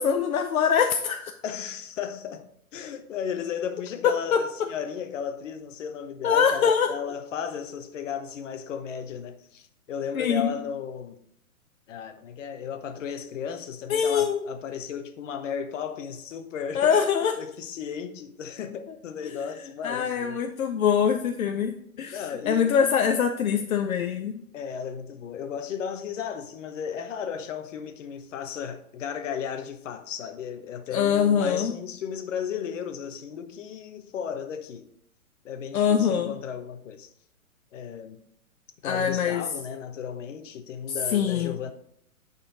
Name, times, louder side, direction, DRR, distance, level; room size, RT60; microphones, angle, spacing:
voice 1, 0.0-1.3 4.0-4.7 6.2-6.9 10.1-10.5 13.9-14.4 16.7-17.4 19.2-19.3 19.8-24.4 30.9-31.8 35.7-36.3 38.8-39.4 40.9-41.6, left 7 dB, 75° left, 0.7 m, -24 dB
voice 2, 1.4-11.2 11.9-17.1 17.3-20.4 22.1-22.6 24.5-34.9 35.4-37.1 37.7-38.2 38.8-41.7, left 7 dB, 60° left, 1.0 m, -35 dB
9.8 x 4.3 x 3.8 m
hypercardioid pair, 130°, 43 cm